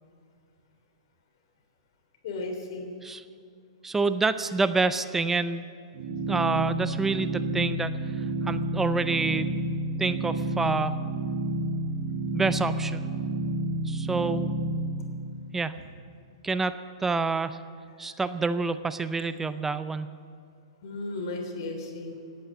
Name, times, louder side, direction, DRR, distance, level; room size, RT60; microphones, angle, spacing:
voice 1, 2.2-2.9 18.0-18.1 20.8-22.1, left 2 dB, 55° left, 3 dB, 3.2 m, -35 dB
voice 2, 3.8-5.6 6.3-9.5 10.0-11.0 12.3-13.1 13.8-14.6 15.5-15.7 16.4-17.6 18.0-20.2, right 3 dB, 10° right, 12 dB, 0.5 m, -28 dB
sound 1, 5.9-14.8, right 1 dB, 50° right, 2.2 m, -30 dB
18.0 x 8.5 x 8.2 m, 2.3 s
hypercardioid pair, 125°, 3 cm